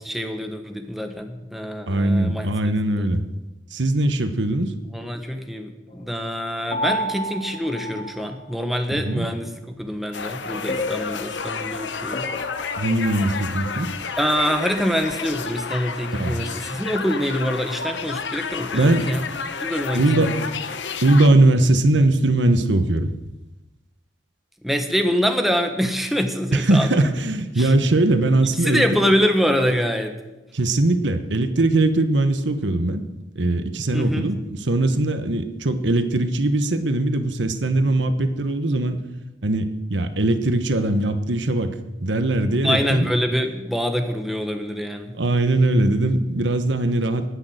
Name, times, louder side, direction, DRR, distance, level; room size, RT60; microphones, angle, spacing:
voice 1, 0.0-2.5 2.9-3.1 4.9-9.5 9.8-12.3 14.2-19.2 19.6-20.5 24.6-27.0 27.5-27.7 28.4-30.2 33.9-34.3 42.6-45.2, equal, ahead, 5 dB, 1.3 m, -25 dB
voice 2, 1.9-3.2 3.7-4.7 8.9-9.3 12.8-13.9 16.1-16.5 18.7-19.1 19.9-20.6 21.0-23.1 26.5-28.8 30.5-33.0 33.3-39.1 39.4-41.7 42.0-43.1 45.1-47.4, right 2 dB, 80° right, 9 dB, 1.1 m, -20 dB
sound 1, 6.7-8.5 10.7-13.4, left 1 dB, 35° left, 0.9 m, -31 dB
sound 2, 10.1-21.3, left 5 dB, 80° left, 1.0 m, -31 dB
19.0 x 6.6 x 7.9 m, 1.0 s
head